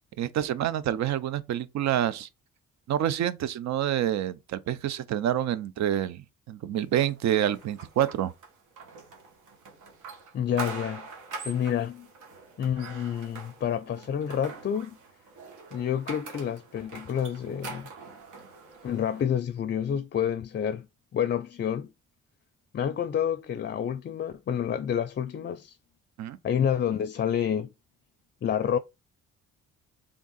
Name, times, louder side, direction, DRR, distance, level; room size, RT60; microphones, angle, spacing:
voice 1, 0.2-2.3 2.9-8.3 26.2-26.4, right 11 dB, 65° right, 0.6 m, -27 dB
sound 1, 6.9-19.2, right 4 dB, 85° right, 1.7 m, -44 dB
voice 2, 10.3-11.1 11.4-12.1 12.6-15.0 15.7-17.9 18.8-20.9 21.1-21.9 22.7-25.8 26.4-27.7 28.4-28.8, left 9 dB, 35° left, 0.4 m, -28 dB
3.7 x 3.6 x 4.0 m
cardioid pair, 90°, 30 cm